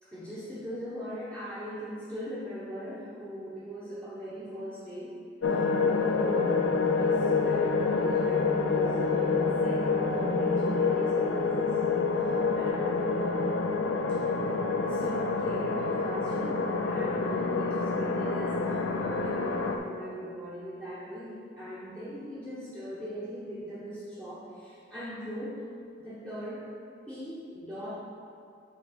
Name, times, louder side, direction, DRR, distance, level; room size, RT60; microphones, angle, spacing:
voice 1, 0.0-5.1 5.5-13.7 14.1-14.2 14.7-25.6 26.0-26.7 27.1-27.9, equal, 10° right, -11 dB, 1.0 m, -40 dB
sound 1, 5.4-19.8, left 4 dB, 90° left, 0.5 m, -27 dB
8.2 x 3.2 x 5.1 m, 2.4 s
head